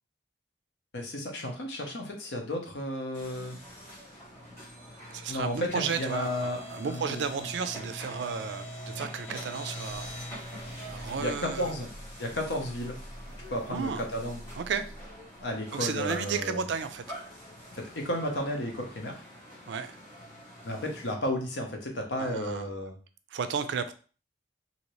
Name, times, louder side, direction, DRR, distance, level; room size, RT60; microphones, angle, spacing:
voice 1, 0.9-3.6 5.3-7.2 10.9-11.9 12.2-13.0 13.5-14.4 15.4-16.7 17.7-19.2 20.6-23.0, left 1 dB, 80° left, 2 dB, 0.8 m, -33 dB
sound 1, 3.1-21.1, equal, 15° left, 1.2 m, -44 dB
voice 2, 5.1-10.1 10.9-11.7 13.7-14.0 14.6-14.9 15.7-17.0 19.7-20.0 22.2-22.7 23.3-23.9, right 6 dB, 75° right, 10 dB, 0.4 m, -33 dB
2.8 x 2.7 x 3.0 m, 0.38 s
head